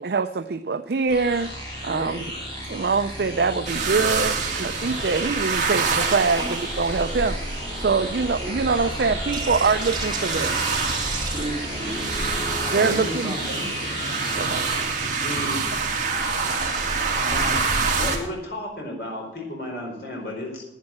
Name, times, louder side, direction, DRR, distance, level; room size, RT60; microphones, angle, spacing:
voice 1, 0.0-2.2 2.7-7.4 7.8-10.5 12.7-13.6 14.3-14.7, right 4 dB, 55° right, 10 dB, 0.5 m, -24 dB
sound 1, 1.1-14.8, equal, 25° left, 5.0 m, -33 dB
sound 2, 3.6-18.2, right 4 dB, 40° right, 2.4 m, -27 dB
voice 2, 9.3-12.0 16.7-16.9, right 4 dB, 25° right, -2 dB, 2.9 m, -33 dB
voice 3, 12.6-13.7 15.2-15.6 17.3-17.7 17.9-20.6, left 1 dB, 60° left, 0 dB, 4.7 m, -33 dB
11.0 x 9.8 x 7.5 m, 0.92 s
head